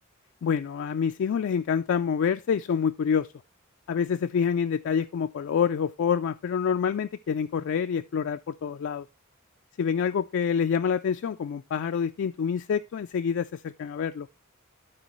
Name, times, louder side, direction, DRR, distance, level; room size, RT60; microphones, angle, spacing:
voice 1, 0.4-3.3 3.9-9.1 9.8-14.3, left 7 dB, 60° left, 0.3 m, -27 dB
12.0 x 4.4 x 3.0 m
head